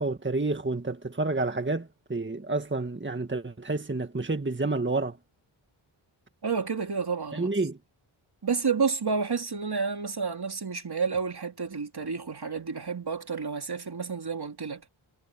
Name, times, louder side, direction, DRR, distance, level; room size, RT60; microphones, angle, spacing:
voice 1, 0.0-5.2 7.3-7.8, right 3 dB, 25° right, 1.9 m, -29 dB
voice 2, 6.4-7.5 8.4-14.8, right 5 dB, 50° right, 2.9 m, -30 dB
cardioid pair, 50°, 48 cm